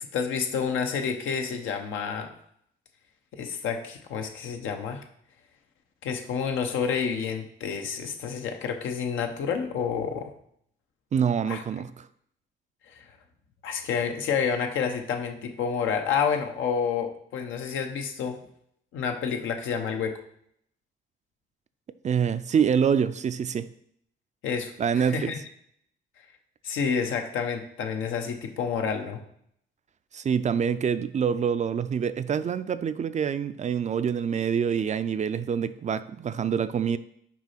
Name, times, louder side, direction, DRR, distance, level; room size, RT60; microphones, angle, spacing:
voice 1, 0.1-2.3 3.3-5.0 6.0-10.3 11.5-11.6 12.9-13.0 13.6-18.4 18.9-20.1 24.4-25.4 26.6-29.2, left 6 dB, 80° left, 1.0 m, -29 dB
voice 2, 11.1-12.1 22.0-23.7 24.8-25.3 30.1-37.0, right 7 dB, 35° right, 0.4 m, -26 dB
6.1 x 4.2 x 5.7 m
cardioid pair, 90°, 20 cm